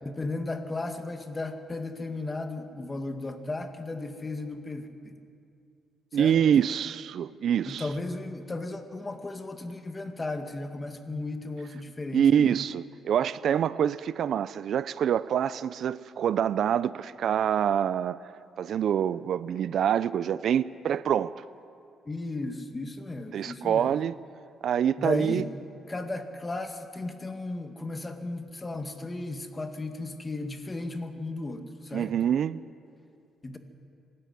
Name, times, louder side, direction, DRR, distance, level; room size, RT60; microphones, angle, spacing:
voice 1, 0.0-5.2 6.1-6.4 7.6-12.5 22.1-23.9 25.0-25.5 25.9-32.1 33.4-33.6, left 2 dB, 25° left, 2.0 m, -35 dB
voice 2, 6.1-7.9 12.1-18.2 18.6-21.3 23.3-24.1 24.6-25.4 31.9-32.6, right 9 dB, 65° right, 0.5 m, -26 dB
25.0 x 13.0 x 9.5 m
cardioid pair, 90°, 0 cm